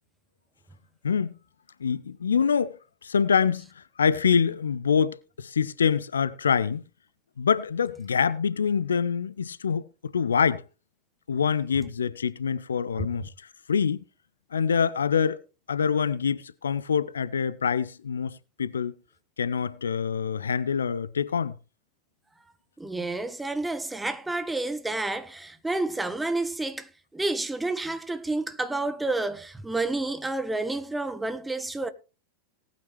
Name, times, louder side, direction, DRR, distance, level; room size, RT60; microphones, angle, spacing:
voice 1, 1.8-6.8 7.4-10.6 11.3-14.0 14.5-15.4 15.7-18.9 19.4-21.5, left 6 dB, 70° left, 0.5 m, -25 dB
voice 2, 22.8-31.9, right 2 dB, 5° right, 1.1 m, -30 dB
18.5 x 9.1 x 3.2 m
figure-of-eight pair, 90°, 0 cm